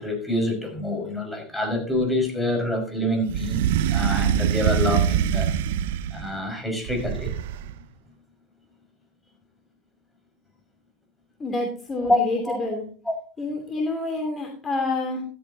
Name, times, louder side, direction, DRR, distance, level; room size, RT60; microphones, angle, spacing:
voice 1, 0.0-3.6 3.9-5.5 6.1-7.3 12.0-12.2 12.5-12.6 13.1-13.2, left 1 dB, 5° left, 2 dB, 5.5 m, -26 dB
sound 1, 3.3-6.3 6.9-7.8, right 10 dB, 70° right, 0.6 m, -24 dB
voice 2, 11.4-12.8 13.4-15.2, left 2 dB, 25° left, 2 dB, 2.8 m, -28 dB
14.0 x 13.5 x 2.9 m, 0.41 s
hypercardioid pair, 80°, 0 cm